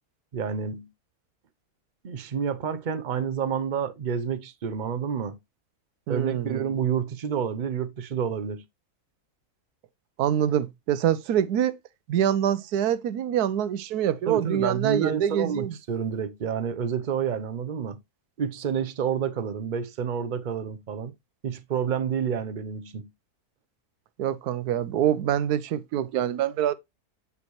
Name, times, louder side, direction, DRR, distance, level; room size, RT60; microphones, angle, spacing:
voice 1, 0.3-0.9 2.0-5.4 6.1-8.6 14.3-18.0 18.4-21.1 21.4-23.1, right 7 dB, 45° right, 0.6 m, -29 dB
voice 2, 6.1-6.6 10.2-11.7 12.1-15.7 24.2-26.7, right 10 dB, 90° right, 1.2 m, -25 dB
8.1 x 5.0 x 3.0 m
omnidirectional pair, 1.6 m